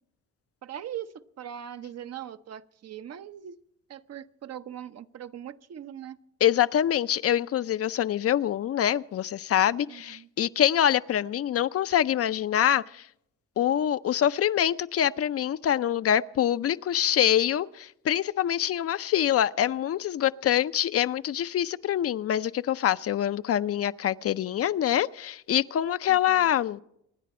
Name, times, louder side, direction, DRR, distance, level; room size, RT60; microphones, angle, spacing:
voice 1, 0.6-3.6 3.9-6.2 9.9-10.3 26.1-26.5, right 10 dB, 55° right, 0.8 m, -41 dB
voice 2, 6.4-13.0 13.6-26.8, left 10 dB, 50° left, 0.5 m, -25 dB
25.5 x 10.0 x 4.3 m
cardioid pair, 90°, 30 cm